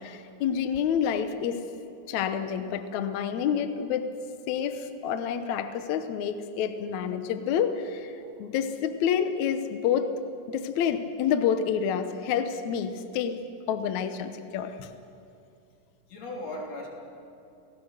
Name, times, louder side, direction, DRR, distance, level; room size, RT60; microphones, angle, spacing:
voice 1, 0.0-1.6 2.1-4.0 4.5-10.2 10.5-13.4 13.7-14.9, left 8 dB, 65° left, 9 dB, 2.0 m, -28 dB
voice 2, 16.1-16.9, left 1 dB, 50° left, -1 dB, 4.4 m, -38 dB
29.0 x 18.0 x 6.6 m, 2.5 s
omnidirectional pair, 4.1 m